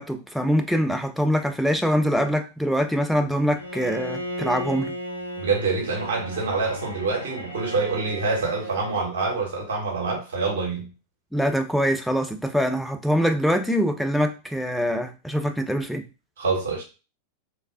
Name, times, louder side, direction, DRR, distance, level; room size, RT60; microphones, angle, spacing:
voice 1, 0.0-4.9 11.3-16.0, equal, ahead, 0.4 m, -24 dB
Bowed string instrument, 3.6-9.1, equal, 85° left, 0.4 m, -35 dB
voice 2, 5.4-10.9 16.4-16.8, right 4 dB, 60° right, 0.9 m, -26 dB
3.1 x 2.1 x 2.4 m
figure-of-eight pair, 90°, 0 cm